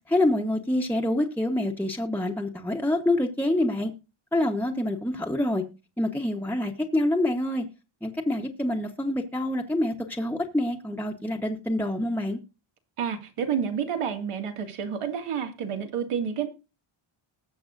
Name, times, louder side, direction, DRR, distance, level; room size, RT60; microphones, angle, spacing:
voice 1, 0.1-3.9 4.3-5.6 6.0-7.6 8.0-12.4, left 1 dB, 5° left, 1.1 m, -26 dB
voice 2, 13.0-16.5, right 7 dB, 85° right, 2.3 m, -29 dB
20.0 x 6.9 x 2.6 m
wide cardioid pair, 125°, 50 cm